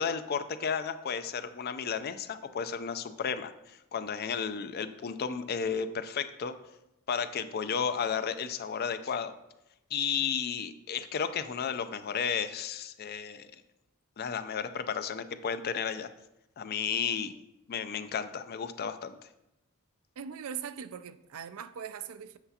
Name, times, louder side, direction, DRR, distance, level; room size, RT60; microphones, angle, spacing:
voice 1, 0.0-6.5 7.1-9.3 9.9-13.5 14.2-16.1 16.6-17.3 17.7-19.1, left 6 dB, 45° left, 0.4 m, -33 dB
voice 2, 20.2-22.4, right 7 dB, 70° right, 0.4 m, -40 dB
7.8 x 6.8 x 2.8 m
head